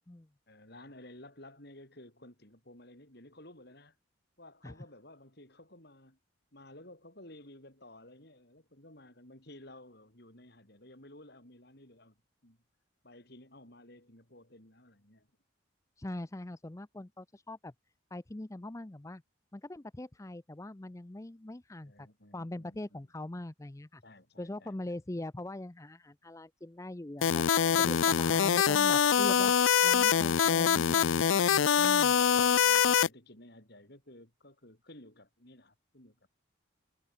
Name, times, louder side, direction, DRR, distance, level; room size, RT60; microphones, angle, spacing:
voice 1, 0.5-4.0 4.4-6.2 6.5-12.2 12.4-12.6 13.0-15.3 21.8-23.1 24.0-25.0 27.7-28.4 32.0-36.3, left 1 dB, 55° left, 7.3 m, -54 dB
voice 2, 16.0-17.7 18.1-19.2 19.5-22.1 22.3-24.0 24.4-27.4 27.8-29.5 29.8-32.1, left 1 dB, 15° left, 0.5 m, -42 dB
sound 1, 27.2-33.1, left 8 dB, 80° left, 0.5 m, -24 dB
head